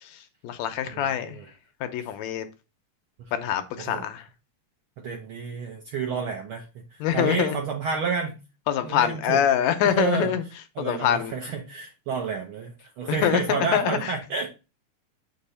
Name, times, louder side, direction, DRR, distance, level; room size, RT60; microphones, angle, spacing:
voice 1, 0.0-1.4 1.8-2.5 3.3-4.3 7.0-7.6 8.7-10.4 10.8-11.4 13.1-14.1, left 9 dB, 75° left, 1.9 m, -25 dB
voice 2, 0.9-1.5 3.8-4.0 5.0-8.4 8.8-9.4 9.8-10.3 10.8-14.5, right 5 dB, 70° right, 1.3 m, -30 dB
6.7 x 3.0 x 5.4 m
omnidirectional pair, 3.4 m